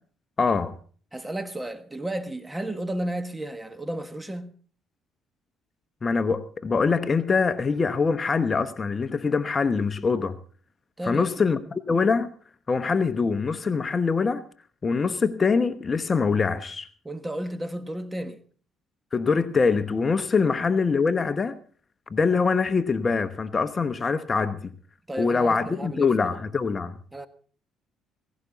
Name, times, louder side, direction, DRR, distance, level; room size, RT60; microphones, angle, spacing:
voice 1, 0.4-0.8 6.0-10.3 11.0-12.3 12.7-14.4 14.8-16.9 19.1-21.6 22.1-24.7 25.2-27.0, left 4 dB, 35° left, 0.9 m, -24 dB
voice 2, 1.1-4.5 11.0-11.4 17.0-18.4 20.4-20.5 25.1-26.3 27.1-27.3, right 1 dB, 15° right, 1.4 m, -33 dB
16.5 x 16.5 x 4.0 m
cardioid pair, 85°, 0 cm